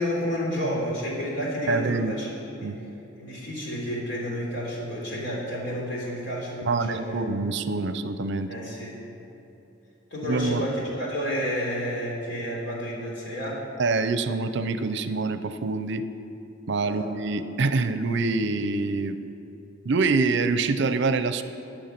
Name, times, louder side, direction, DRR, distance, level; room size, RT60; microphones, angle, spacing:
voice 1, 0.0-2.3 2.6-2.8 3.2-7.2 8.5-8.9 10.1-13.7 16.8-17.1, equal, 65° left, -3 dB, 3.4 m, -30 dB
voice 2, 1.7-2.1 2.6-2.8 6.6-8.5 10.2-10.7 13.8-16.0 16.7-19.2 19.8-21.4, right 3 dB, 65° right, 11 dB, 0.6 m, -25 dB
14.5 x 8.7 x 5.9 m, 2.9 s
head